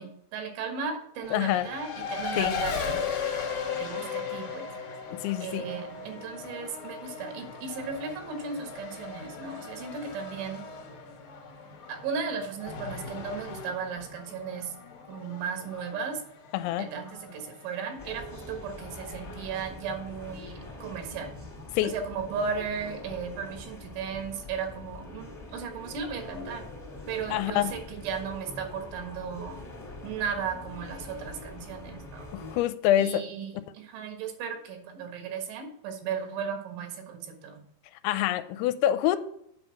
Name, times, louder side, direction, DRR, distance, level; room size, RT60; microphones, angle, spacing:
voice 1, 0.0-3.1 3.8-4.7 5.4-10.6 11.9-14.8 15.1-16.2 16.8-21.3 21.8-26.7 27.1-29.6 30.0-32.3 33.0-37.6, right 6 dB, 80° right, 4.0 m, -36 dB
Race car auto racing, 1.2-20.4, left 6 dB, 55° left, 2.1 m, -38 dB
voice 2, 1.3-1.7 2.4-2.6 5.2-5.6 16.5-16.9 21.8-21.9 27.3-27.7 32.3-33.3 38.0-39.2, left 12 dB, 85° left, 2.9 m, -26 dB
sound 1, 18.0-32.6, left 2 dB, 10° left, 1.2 m, -44 dB
8.2 x 5.4 x 7.1 m
omnidirectional pair, 5.3 m